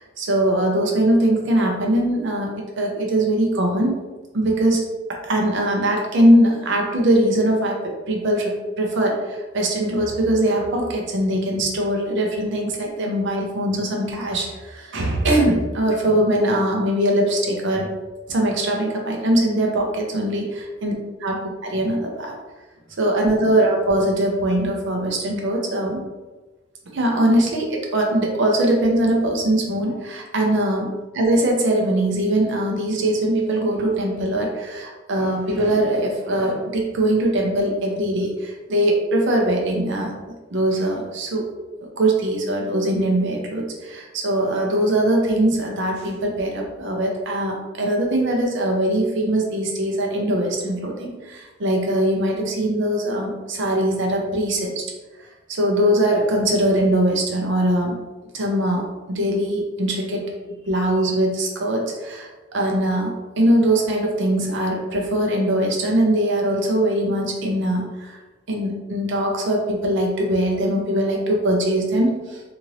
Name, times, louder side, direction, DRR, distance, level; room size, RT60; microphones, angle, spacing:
voice 1, 0.0-3.9 4.3-4.8 5.2-17.9 18.3-20.9 21.2-22.4 23.0-26.0 26.9-30.9 31.1-40.1 40.5-41.5 41.8-54.8 55.2-58.0 58.3-60.3 60.7-68.2 68.5-72.4, right 1 dB, 65° right, 0 dB, 0.6 m, -21 dB
2.8 x 2.5 x 3.1 m, 1.2 s
head